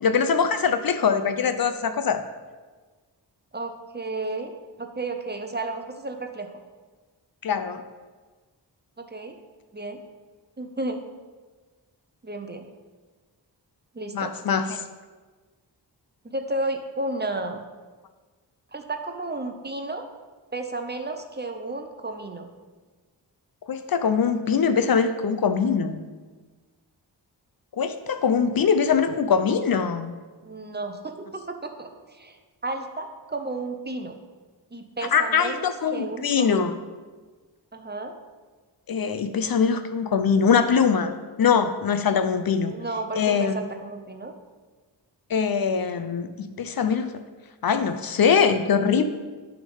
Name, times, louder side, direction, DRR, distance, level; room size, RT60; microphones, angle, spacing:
voice 1, 0.0-2.2 7.4-7.8 14.1-14.8 23.7-26.0 27.8-30.1 35.1-36.7 38.9-42.7 43.1-43.6 45.3-47.1 47.6-49.0, left 6 dB, 55° left, 9 dB, 0.6 m, -22 dB
voice 2, 3.5-4.5 4.8-6.5 9.0-9.4 9.7-10.0 10.6-11.0 12.2-12.7 13.9-14.3 16.2-17.6 18.7-20.1 20.5-22.5 30.4-34.1 34.7-36.7 37.7-38.1 42.7-44.3, right 2 dB, 25° right, 5 dB, 0.7 m, -33 dB
9.4 x 3.7 x 5.3 m, 1.4 s
cardioid pair, 65°, 43 cm